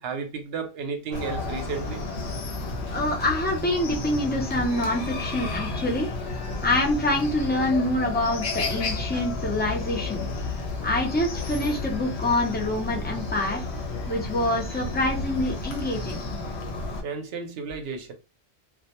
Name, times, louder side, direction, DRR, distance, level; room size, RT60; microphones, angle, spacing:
voice 1, 0.0-2.0 8.7-8.8 9.1-9.2 17.0-18.1, right 5 dB, 70° right, 0.8 m, -33 dB
Chicken rooster, 1.1-17.0, left 3 dB, 70° left, 0.9 m, -32 dB
voice 2, 2.9-6.1 6.6-10.3 10.8-13.6 14.1-16.2, left 1 dB, 15° left, 0.3 m, -26 dB
2.2 x 2.1 x 2.8 m
omnidirectional pair, 1.1 m